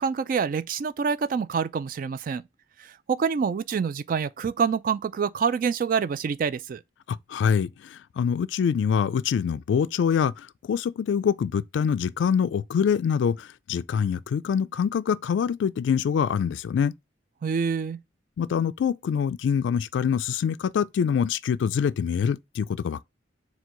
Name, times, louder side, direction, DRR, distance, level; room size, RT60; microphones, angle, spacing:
voice 1, 0.0-2.4 2.8-6.8 17.4-18.0, right 6 dB, 50° right, 0.3 m, -26 dB
voice 2, 7.1-16.9 18.4-23.0, left 7 dB, 80° left, 0.3 m, -25 dB
4.5 x 2.3 x 3.7 m
head